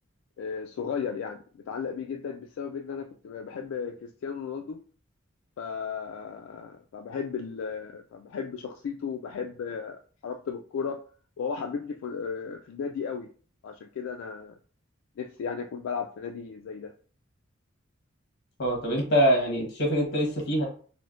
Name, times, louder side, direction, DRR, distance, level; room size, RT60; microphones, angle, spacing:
voice 1, 0.4-4.8 5.6-11.0 11.4-13.3 13.6-14.5 15.2-16.9, left 6 dB, 75° left, 3 dB, 0.3 m, -35 dB
voice 2, 18.6-20.7, equal, 55° left, 0 dB, 1.1 m, -24 dB
4.2 x 2.1 x 2.4 m, 0.42 s
head